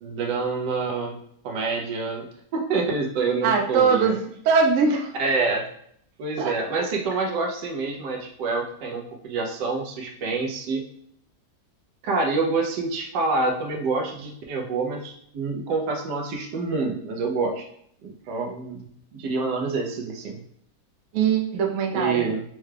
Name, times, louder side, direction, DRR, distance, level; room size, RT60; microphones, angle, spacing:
voice 1, 0.0-1.2 1.4-4.1 5.2-5.7 6.2-10.8 12.0-17.7 18.0-18.9 19.1-20.4 21.9-22.4, right 3 dB, 85° right, 1 dB, 1.3 m, -27 dB
voice 2, 3.4-4.2 4.4-5.1 6.4-6.5 21.1-22.3, right 5 dB, 65° right, 3 dB, 0.9 m, -21 dB
4.7 x 2.2 x 3.2 m, 0.66 s
omnidirectional pair, 1.8 m